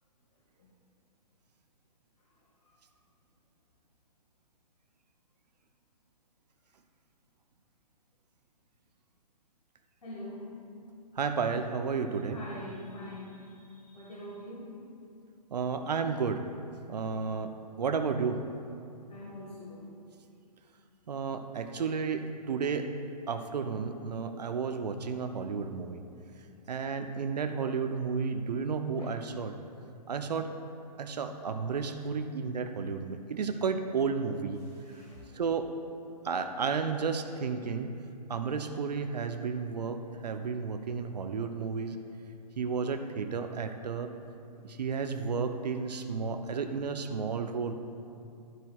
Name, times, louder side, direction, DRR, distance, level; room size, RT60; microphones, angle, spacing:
voice 1, 10.0-10.6 12.3-14.7 19.1-19.9 29.0-29.1 34.8-35.4, left 1 dB, 65° left, -4 dB, 1.7 m, -44 dB
voice 2, 11.1-12.4 15.5-16.4 16.9-18.4 21.1-22.9 23.3-26.0 26.7-29.6 30.1-30.5 31.0-34.6 34.9-35.0 35.3-35.7 36.2-37.9 38.3-42.0 42.6-44.1 44.6-47.7, right 5 dB, 75° right, 7 dB, 0.6 m, -32 dB
12.0 x 11.0 x 2.3 m, 2.5 s
hypercardioid pair, 135°, 21 cm